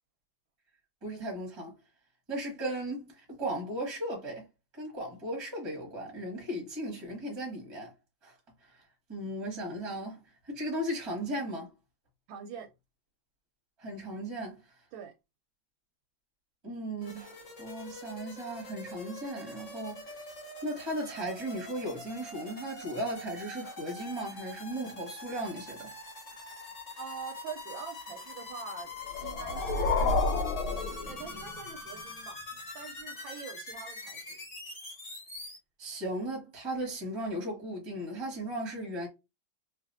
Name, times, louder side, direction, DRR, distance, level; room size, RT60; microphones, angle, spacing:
voice 1, 1.0-1.7 2.3-4.5 4.8-7.9 8.2-8.3 8.6-8.8 9.1-11.7 13.8-14.6 16.6-20.2 20.6-25.9 35.8-39.1, right 1 dB, 15° right, 1.0 m, -36 dB
voice 2, 12.3-12.7 14.9-15.1 27.0-28.9 29.2-34.4, right 7 dB, 80° right, 1.3 m, -45 dB
sound 1, 17.0-35.6, left 2 dB, 40° left, 1.6 m, -44 dB
sound 2, 29.1-31.7, left 3 dB, 90° left, 1.4 m, -30 dB
3.3 x 2.8 x 2.5 m
omnidirectional pair, 2.2 m